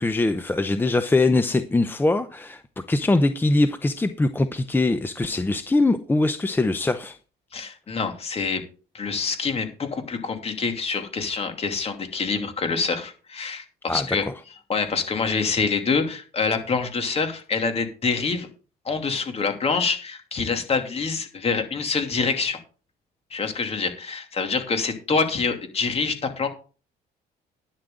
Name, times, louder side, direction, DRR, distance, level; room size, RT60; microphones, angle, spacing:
voice 1, 0.0-2.6 2.9-7.2 13.9-14.1, left 2 dB, 10° left, 0.7 m, -22 dB
voice 2, 7.5-8.6 8.9-14.2 14.7-18.5 18.8-22.6 23.3-26.5, left 4 dB, 35° left, 2.8 m, -26 dB
11.5 x 10.5 x 3.8 m
cardioid pair, 110°, 17 cm